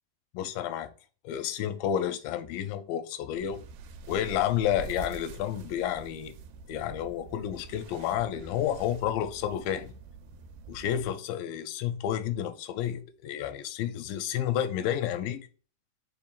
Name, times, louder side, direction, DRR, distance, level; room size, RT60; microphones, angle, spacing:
voice 1, 0.3-0.9 1.2-3.6 4.1-6.3 6.7-9.9 10.7-15.5, left 10 dB, 90° left, 2.3 m, -30 dB
sound 1, 3.4-11.1, right 5 dB, 85° right, 2.2 m, -45 dB
5.8 x 3.8 x 2.3 m
omnidirectional pair, 3.9 m